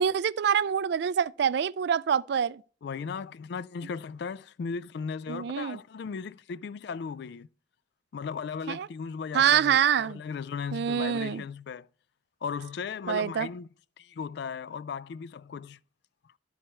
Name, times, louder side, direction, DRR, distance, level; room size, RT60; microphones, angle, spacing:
voice 1, 0.0-2.6 5.3-5.8 8.7-8.9 9.3-10.2 10.7-11.4 13.1-13.5, right 8 dB, 60° right, 0.3 m, -25 dB
voice 2, 2.8-7.5 8.1-11.9 12.4-13.7 14.0-15.8, left 6 dB, 60° left, 0.3 m, -36 dB
12.0 x 4.3 x 4.3 m
head